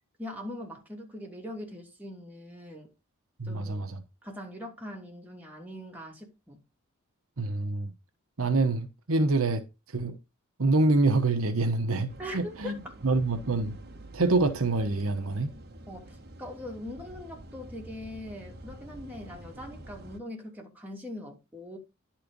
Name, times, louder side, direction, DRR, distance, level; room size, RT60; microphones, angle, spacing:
voice 1, 0.2-2.9 3.4-3.8 4.2-6.6 12.2-12.9 15.9-21.8, left 1 dB, 10° right, 3.0 m, -41 dB
voice 2, 3.4-4.0 7.4-7.9 8.4-9.6 9.9-10.2 10.6-13.8 14.1-15.5, right 3 dB, 70° right, 1.1 m, -26 dB
sound 1, 12.1-20.2, right 1 dB, 50° right, 1.6 m, -47 dB
11.0 x 4.4 x 5.2 m
head